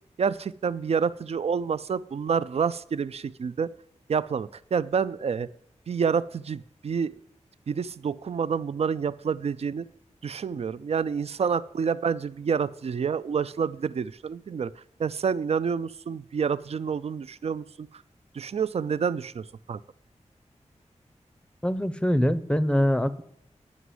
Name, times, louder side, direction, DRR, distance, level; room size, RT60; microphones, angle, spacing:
voice 1, 0.2-3.7 4.1-5.5 5.9-7.2 7.7-9.9 10.2-18.0 18.3-19.8, right 6 dB, 60° right, 17 dB, 0.4 m, -28 dB
voice 2, 21.6-23.2, equal, 10° left, 14 dB, 0.6 m, -23 dB
9.7 x 6.1 x 7.8 m, 0.74 s
wide cardioid pair, 110°, 12 cm